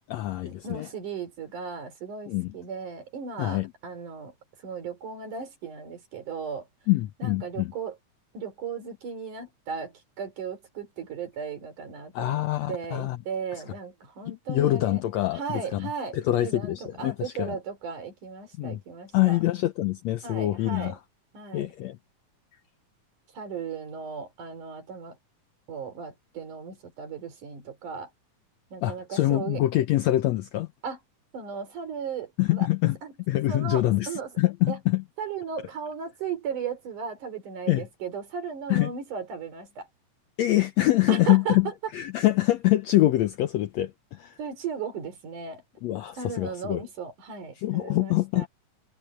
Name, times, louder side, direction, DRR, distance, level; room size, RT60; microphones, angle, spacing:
voice 1, 0.1-0.9 2.3-2.5 3.4-3.7 6.9-7.7 12.2-13.2 14.5-15.9 16.1-17.6 18.6-18.8 19.1-21.0 21.5-22.0 28.8-30.7 32.4-33.0 33.3-34.1 34.4-35.0 37.7-37.8 38.7-38.9 40.4-44.4 45.8-46.8 47.6-48.5, left 16 dB, 75° left, 1.7 m, -25 dB
voice 2, 0.6-4.3 4.6-6.7 7.2-8.0 8.3-12.4 12.7-15.0 15.3-19.4 20.2-21.0 21.3-21.7 23.3-25.2 25.7-28.1 28.7-29.6 30.8-31.0 31.3-32.7 33.0-33.1 33.5-34.3 34.7-34.8 35.2-39.9 41.1-41.6 44.4-45.6 46.2-48.5, right 6 dB, 75° right, 5.1 m, -36 dB
omnidirectional pair, 3.6 m